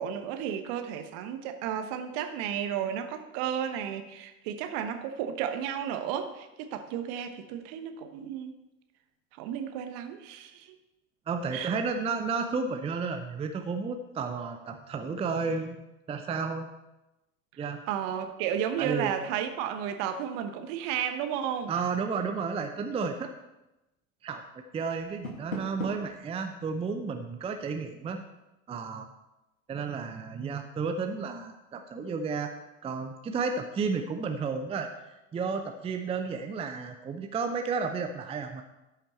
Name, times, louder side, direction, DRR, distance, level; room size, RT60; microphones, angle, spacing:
voice 1, 0.0-8.5 9.4-10.7 11.5-11.7 17.9-21.7, right 9 dB, 50° right, 7 dB, 1.2 m, -33 dB
voice 2, 11.3-15.8 16.1-16.7 17.6-17.8 18.8-19.1 21.7-23.3 24.2-28.2 28.7-29.1 29.7-32.5 32.8-34.9 35.3-38.6, right 5 dB, 15° right, 6 dB, 0.6 m, -32 dB
Door, 25.0-26.2, left 2 dB, 80° left, 1.8 m, -38 dB
13.0 x 5.8 x 4.4 m, 0.96 s
figure-of-eight pair, 80°, 41 cm